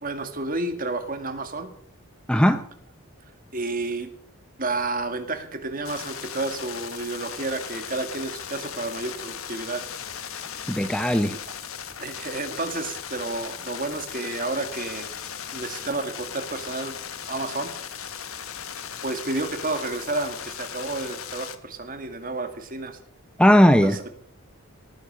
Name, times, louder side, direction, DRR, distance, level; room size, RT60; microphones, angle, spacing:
voice 1, 0.0-1.7 3.5-4.1 4.6-9.8 11.3-11.4 12.0-15.1 15.5-17.0 17.3-17.7 19.0-23.0 23.8-24.1, right 2 dB, 40° right, 7 dB, 2.2 m, -31 dB
voice 2, 2.3-2.6 10.7-11.4 23.4-24.0, equal, 5° left, 9 dB, 0.7 m, -17 dB
sound 1, 5.8-21.5, left 8 dB, 70° left, 1.4 m, -37 dB
18.0 x 10.5 x 6.4 m, 0.62 s
head